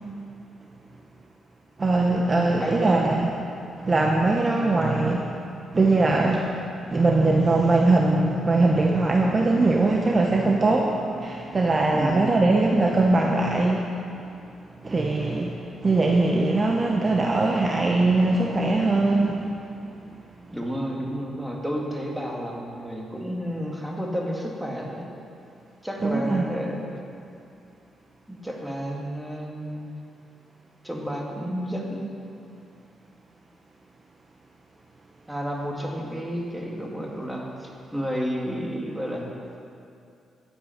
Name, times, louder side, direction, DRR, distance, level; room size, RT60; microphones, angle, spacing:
voice 1, 1.8-3.3 3.8-5.3 5.7-6.6 6.9-13.9 14.8-19.5 26.0-26.5, right 2 dB, 30° right, 0 dB, 0.9 m, -21 dB
voice 2, 2.6-3.1 11.9-12.3 20.5-25.1 25.8-26.8 28.3-29.9 30.8-32.1 35.3-39.3, equal, 5° right, -1 dB, 2.0 m, -31 dB
13.0 x 8.4 x 5.8 m, 2.6 s
cardioid pair, 105°, 0 cm